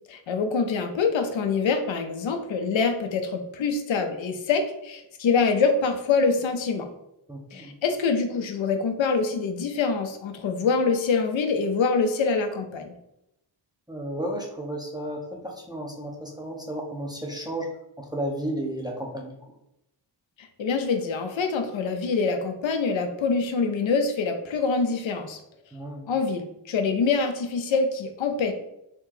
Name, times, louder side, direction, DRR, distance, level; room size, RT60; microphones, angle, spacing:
voice 1, 0.1-6.9 7.5-12.9 20.4-25.4 26.1-28.5, left 4 dB, 85° left, 6 dB, 0.6 m, -25 dB
voice 2, 7.3-7.8 13.9-17.7 18.0-19.4 25.7-26.1, right 1 dB, 10° right, -2 dB, 0.5 m, -33 dB
2.9 x 2.7 x 3.7 m, 0.84 s
wide cardioid pair, 140°, 45 cm